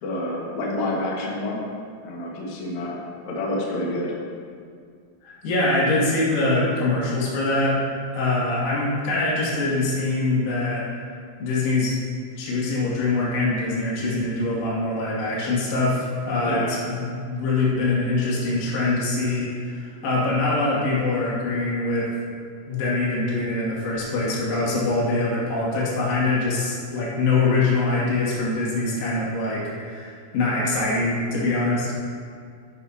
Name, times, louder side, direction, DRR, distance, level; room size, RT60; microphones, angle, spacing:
voice 1, 0.0-1.6 2.0-3.0 3.3-4.2 16.4-16.8, left 1 dB, 65° left, -4 dB, 1.9 m, -28 dB
voice 2, 5.2-7.8 8.1-10.8 11.4-12.0 12.4-22.1 22.7-31.9, left 2 dB, 85° left, -6 dB, 5.2 m, -23 dB
12.0 x 10.5 x 2.9 m, 2.2 s
omnidirectional pair, 6.0 m